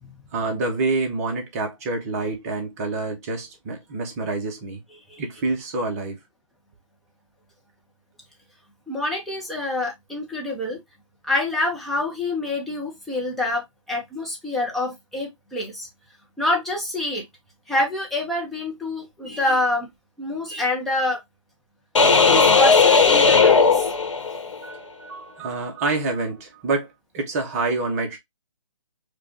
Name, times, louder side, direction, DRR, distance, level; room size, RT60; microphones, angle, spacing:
voice 1, 0.3-4.8 5.2-6.2 24.5-28.2, right 3 dB, 30° right, 1.0 m, -27 dB
voice 2, 8.9-10.8 11.2-15.9 16.4-17.2 17.7-19.9 20.2-21.2 22.3-23.9, left 2 dB, ahead, 0.8 m, -26 dB
sound 1, 22.0-24.6, left 5 dB, 65° left, 1.3 m, -16 dB
4.8 x 2.4 x 2.9 m
figure-of-eight pair, 145°, 17 cm